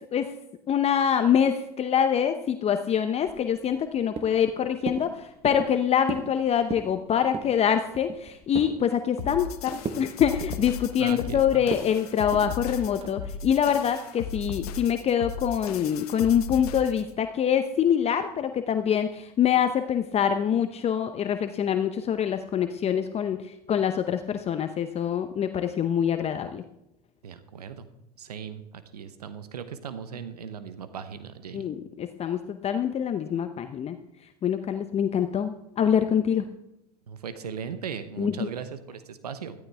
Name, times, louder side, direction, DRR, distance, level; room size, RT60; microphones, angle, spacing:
voice 1, 0.7-26.6 31.5-34.0 34.4-36.5 38.2-38.5, left 8 dB, 30° left, 8 dB, 0.8 m, -25 dB
sound 1, 3.2-3.9 4.2-4.5 4.9-5.1 5.5-5.8 6.1-6.3 6.6-6.9 7.3-7.6 7.9-8.8 9.2-9.5 9.8-10.1 10.4-11.3 11.7-11.9 12.3-12.5 13.0-13.3, right 5 dB, 30° right, 1.2 m, -35 dB
sound 2, 9.2-17.1, left 6 dB, 75° left, 1.0 m, -37 dB
voice 2, 11.0-11.7 27.2-27.9 28.2-31.7 37.1-39.5, right 7 dB, 85° right, 11 dB, 1.0 m, -38 dB
14.0 x 13.0 x 3.5 m, 0.84 s
hypercardioid pair, 85°, 20 cm